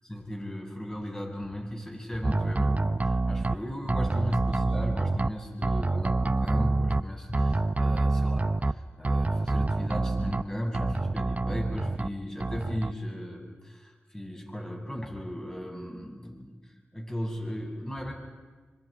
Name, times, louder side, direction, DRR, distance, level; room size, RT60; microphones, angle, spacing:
voice 1, 0.1-18.1, equal, 15° left, 0 dB, 8.0 m, -36 dB
sound 1, 2.2-3.6 3.9-5.3 5.6-7.0 7.3-8.7 9.0-10.4 10.7-12.1 12.4-12.9, right 2 dB, 35° right, 0.8 m, -26 dB
25.5 x 25.5 x 5.1 m, 1.4 s
cardioid pair, 40°, 5 cm